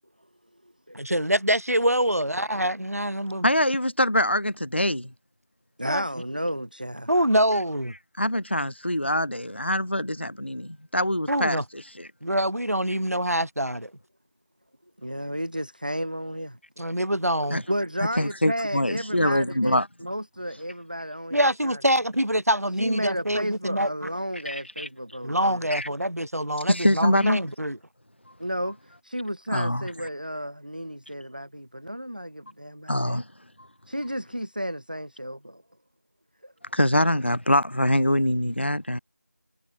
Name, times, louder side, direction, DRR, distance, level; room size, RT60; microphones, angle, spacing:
voice 1, 0.9-3.5 5.8-6.0 7.1-7.9 11.3-11.6 12.2-13.9 16.8-17.6 21.3-24.1 25.2-27.8, right 1 dB, 65° right, 4.0 m, -25 dB
voice 2, 3.4-5.1 8.2-11.6 12.0-12.1 17.5-17.6 18.0-19.9 24.4-24.9 25.7-25.9 26.7-27.4 29.5-29.9 32.9-33.3 36.7-39.0, left 1 dB, 45° left, 1.4 m, -24 dB
voice 3, 5.8-7.1 15.0-16.6 17.7-21.8 22.8-25.6 28.4-28.8 29.0-33.2 33.9-35.6 36.4-36.5, equal, 30° right, 0.9 m, -32 dB
figure-of-eight pair, 180°, 9 cm